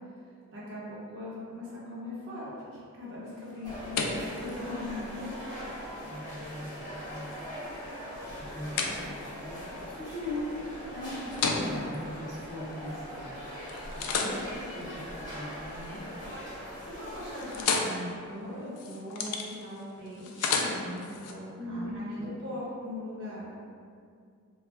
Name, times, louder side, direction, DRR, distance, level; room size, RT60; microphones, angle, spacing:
voice 1, 0.5-5.4 16.9-23.5, left 1 dB, 55° right, -7 dB, 0.8 m, -40 dB
sound 1, 3.3-13.3 13.7-16.0 16.3-16.8 17.0-21.3, left 4 dB, 85° left, 0.3 m, -36 dB
sound 2, 3.6-17.6, equal, 20° left, 0.7 m, -41 dB
voice 2, 6.0-7.4 8.4-9.6 9.9-13.4 13.9-15.0 15.3-16.0 21.6-22.3, left 1 dB, 15° right, -11 dB, 0.5 m, -39 dB
2.3 x 2.0 x 3.3 m, 2.3 s
head